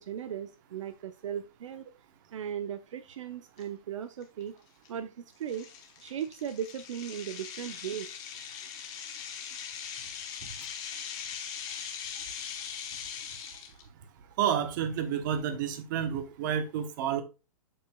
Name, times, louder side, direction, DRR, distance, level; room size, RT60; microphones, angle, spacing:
voice 1, 0.0-1.8 2.3-4.5 4.9-5.7 6.0-8.1, right 9 dB, 60° right, 0.6 m, -37 dB
sound 1, 3.6-3.7 4.2-4.4 4.9-5.0 5.5-13.8, left 7 dB, 20° left, 1.0 m, -41 dB
voice 2, 14.4-17.2, right 9 dB, 35° right, 1.0 m, -30 dB
7.6 x 6.5 x 2.3 m
hypercardioid pair, 165°, 18 cm